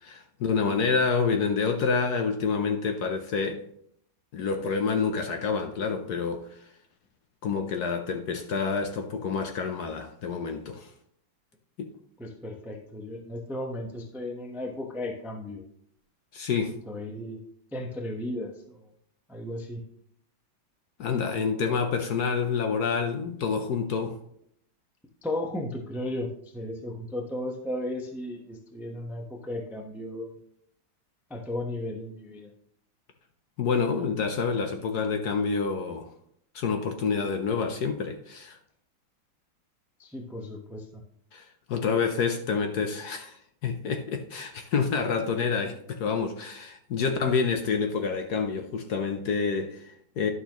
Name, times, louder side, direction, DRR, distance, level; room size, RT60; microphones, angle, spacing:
voice 1, 0.0-3.6 4.3-6.6 7.4-10.9 11.8-11.9 16.3-16.8 21.0-24.2 33.6-36.1 36.5-38.6 41.3-50.3, left 5 dB, 65° left, 1.1 m, -28 dB
voice 2, 12.2-15.6 16.9-17.4 17.7-18.9 19.3-19.8 25.2-30.3 31.3-32.5 40.0-41.0, left 1 dB, ahead, 0.5 m, -35 dB
11.0 x 6.2 x 3.0 m
omnidirectional pair, 2.1 m